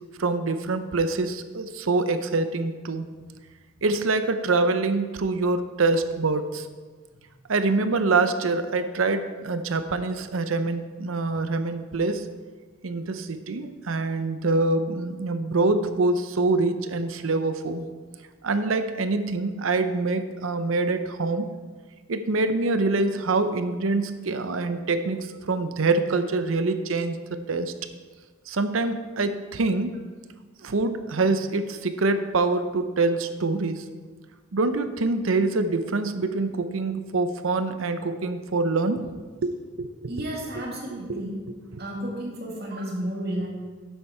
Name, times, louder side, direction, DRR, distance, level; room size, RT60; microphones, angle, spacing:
voice 1, 0.2-3.0 3.8-6.7 7.5-12.3 12.8-17.8 18.4-21.5 22.1-27.7 28.5-30.0 30.6-33.8 34.5-39.1 39.4-40.6 41.1-41.2 41.7-41.8, right 3 dB, 85° right, 10 dB, 0.7 m, -25 dB
voice 2, 40.1-41.4 41.8-43.5, right 1 dB, 50° right, -2 dB, 2.3 m, -32 dB
10.5 x 8.0 x 4.4 m, 1.4 s
head